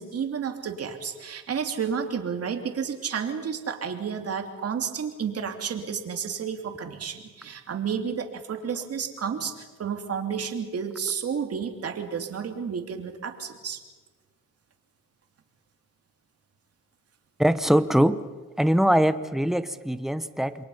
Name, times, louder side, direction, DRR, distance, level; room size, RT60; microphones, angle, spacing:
voice 1, 0.0-13.8, right 7 dB, 50° right, 4 dB, 3.0 m, -31 dB
voice 2, 17.4-18.2 18.6-20.6, equal, ahead, 12 dB, 1.1 m, -22 dB
28.5 x 22.5 x 5.7 m, 1.3 s
cardioid pair, 90°, 30 cm